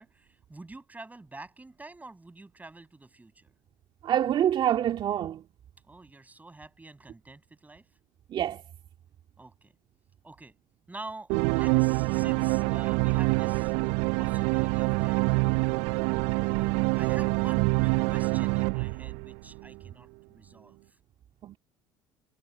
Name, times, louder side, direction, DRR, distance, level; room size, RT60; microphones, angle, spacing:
voice 1, 0.0-3.5 5.8-7.9 9.4-9.7 10.2-10.6 10.9-13.7 14.2-15.6 16.4-21.0, right 2 dB, 15° right, 8.0 m, -47 dB
voice 2, 4.0-5.4 8.3-8.6 21.4-21.6, right 10 dB, 50° right, 2.1 m, -26 dB
String and Synth Pad, 11.3-19.7, right 28 dB, 70° right, 0.4 m, -26 dB
hypercardioid pair, 70°, 11 cm